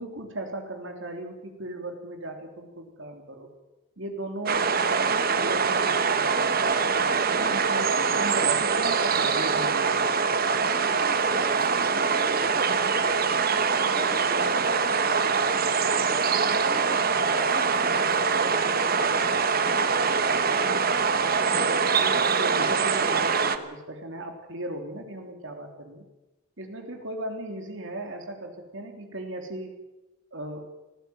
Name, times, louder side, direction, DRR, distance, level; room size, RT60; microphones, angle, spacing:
voice 1, 0.0-3.5 4.0-6.6 6.9-9.9 21.2-26.0 26.6-29.7 30.3-30.7, right 1 dB, 60° right, 4 dB, 3.4 m, -37 dB
sound 1, 4.5-23.6, right 5 dB, 45° right, 1.1 m, -24 dB
voice 2, 10.9-13.3 13.7-15.8 16.1-19.8, right 2 dB, 25° right, 2 dB, 1.8 m, -42 dB
19.0 x 15.0 x 9.1 m, 1.0 s
head